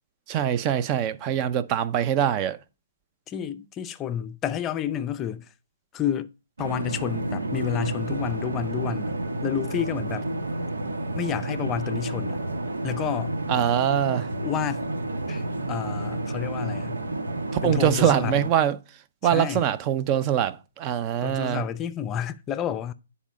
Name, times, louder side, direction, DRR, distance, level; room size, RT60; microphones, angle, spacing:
voice 1, 0.3-2.6 13.5-14.3 17.6-18.8 19.2-21.6, right 10 dB, 30° right, 0.7 m, -23 dB
voice 2, 3.3-5.5 5.9-6.3 6.6-9.1 9.4-10.3 11.1-12.4 12.8-13.4 14.4-14.8 15.3-17.0 17.6-18.3 19.2-19.7 21.2-22.9, left 9 dB, 20° left, 0.5 m, -30 dB
sound 1, 6.6-18.5, right 2 dB, 85° right, 1.4 m, -30 dB
10.0 x 4.2 x 5.2 m
hypercardioid pair, 135°, 0 cm